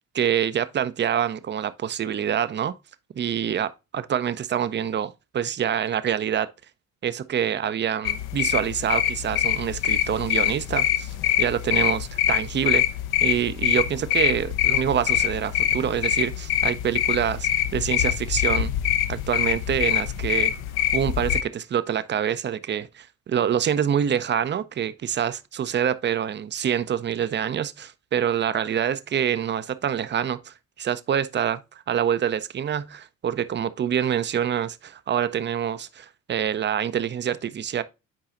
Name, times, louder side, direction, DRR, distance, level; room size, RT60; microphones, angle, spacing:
voice 1, 0.1-2.7 3.1-6.5 7.0-12.8 13.2-18.7 19.1-20.5 20.9-31.6 31.9-37.8, right 9 dB, 30° right, 0.5 m, -26 dB
sound 1, 8.0-21.4, left 11 dB, 65° left, 0.7 m, -24 dB
8.7 x 4.7 x 2.5 m
hypercardioid pair, 45°, 41 cm